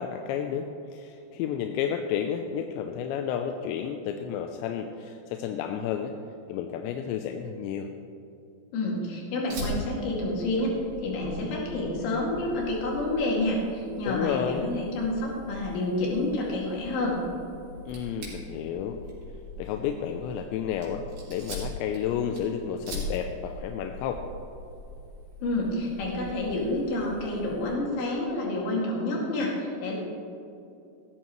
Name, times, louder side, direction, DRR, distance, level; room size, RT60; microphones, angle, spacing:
voice 1, 0.0-6.1 6.5-7.9 14.1-14.6 17.9-19.0 19.6-24.2, left 8 dB, 85° left, 5 dB, 2.8 m, -31 dB
voice 2, 8.7-10.7 11.0-17.2 25.4-29.9, left 2 dB, 65° left, -3 dB, 4.2 m, -29 dB
Fire, 9.5-27.7, left 1 dB, 50° right, 4.7 m, -41 dB
15.5 x 13.5 x 3.1 m, 2.7 s
omnidirectional pair, 5.2 m